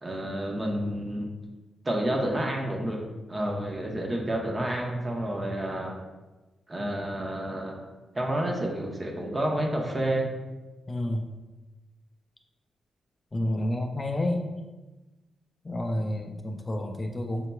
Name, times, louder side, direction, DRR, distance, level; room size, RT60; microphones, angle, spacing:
voice 1, 0.0-1.3 1.8-3.0 3.3-5.9 6.7-7.8 8.1-10.3, right 1 dB, 35° right, 0 dB, 0.9 m, -29 dB
voice 2, 10.9-11.3 13.3-14.5 15.6-17.5, left 1 dB, 30° left, 3 dB, 0.4 m, -29 dB
5.4 x 2.8 x 2.3 m, 1.2 s
supercardioid pair, 55°, 0 cm